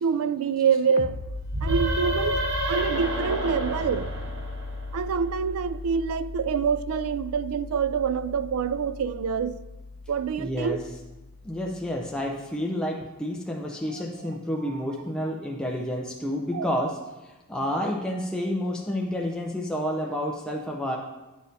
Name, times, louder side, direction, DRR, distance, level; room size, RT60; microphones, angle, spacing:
voice 1, 0.0-1.2 1.6-4.1 4.9-9.6 10.1-10.8 16.5-16.9, right 6 dB, 80° right, 0.3 m, -26 dB
sound 1, 1.0-12.3, left 3 dB, 55° left, 0.5 m, -38 dB
sound 2, 1.5-5.1, right 1 dB, 65° right, 0.9 m, -29 dB
voice 2, 10.4-10.8 11.4-21.0, equal, 5° left, 0.5 m, -30 dB
9.6 x 6.3 x 2.7 m
head